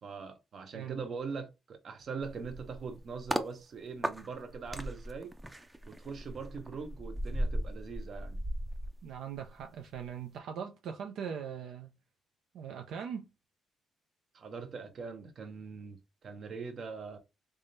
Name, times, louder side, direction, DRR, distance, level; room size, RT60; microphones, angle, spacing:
voice 1, 0.0-5.3 5.9-8.4 14.3-17.2, right 5 dB, 55° right, 0.9 m, -42 dB
voice 2, 0.7-1.1 9.0-11.9 12.5-13.3, right 7 dB, 80° right, 0.5 m, -40 dB
sound 1, 2.2-3.5 4.0-9.6 9.9-10.2, right 1 dB, 15° right, 0.5 m, -37 dB
3.5 x 3.3 x 2.6 m
cardioid pair, 90°, 0 cm